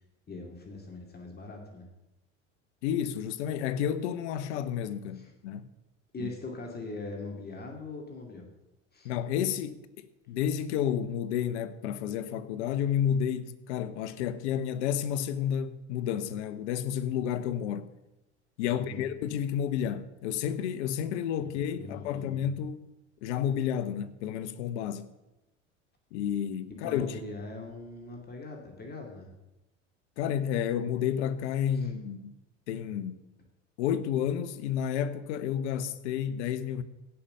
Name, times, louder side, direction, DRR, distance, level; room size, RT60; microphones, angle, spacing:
voice 1, 0.3-1.9 5.1-5.3 6.1-8.5 8.9-9.1 18.7-19.1 21.4-21.5 21.8-22.4 26.8-29.3 31.8-31.9, left 3 dB, 25° left, 2.5 m, -41 dB
voice 2, 2.8-5.7 6.2-6.3 9.0-17.9 18.6-22.9 23.2-25.1 26.1-27.2 30.2-32.4 32.7-33.1 33.8-36.8, left 9 dB, 70° left, 1.1 m, -31 dB
17.0 x 5.8 x 6.6 m
hypercardioid pair, 80°, 36 cm